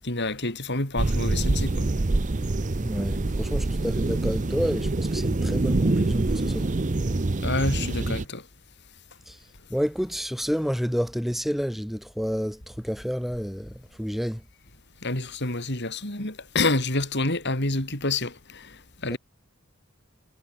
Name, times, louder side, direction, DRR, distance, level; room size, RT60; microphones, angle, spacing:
voice 1, 0.0-1.9 7.4-8.4 15.0-18.7 19.0-19.2, left 2 dB, 50° left, 5.2 m, -28 dB
sound 1, 1.0-8.2, right 2 dB, 35° right, 0.7 m, -25 dB
voice 2, 2.8-6.7 9.3-9.4 9.7-14.4 19.1-19.2, equal, ahead, 2.9 m, -29 dB
head